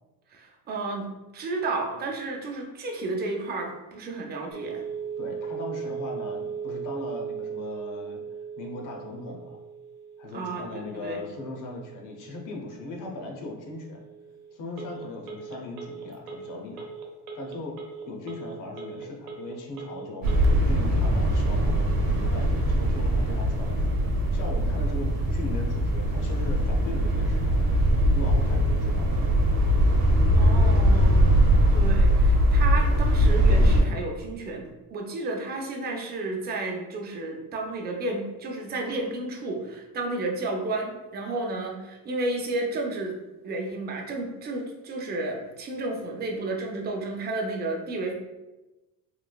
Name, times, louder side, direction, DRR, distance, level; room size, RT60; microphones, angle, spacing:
voice 1, 0.3-1.1 1.3-4.8 10.3-11.2 30.4-31.2 31.7-43.2 43.4-48.1, right 2 dB, 30° right, 1 dB, 0.4 m, -32 dB
Telephone, 4.5-20.5, right 6 dB, 80° right, 0.6 m, -38 dB
voice 2, 5.2-8.2 8.6-9.6 10.2-14.0 14.5-16.9 17.3-17.8 18.1-27.7 28.1-29.1, left 2 dB, 60° left, 1 dB, 0.7 m, -39 dB
sound 1, 20.2-33.8, equal, 50° right, 0.9 m, -21 dB
3.1 x 3.0 x 2.2 m, 1.1 s
cardioid pair, 165°, 36 cm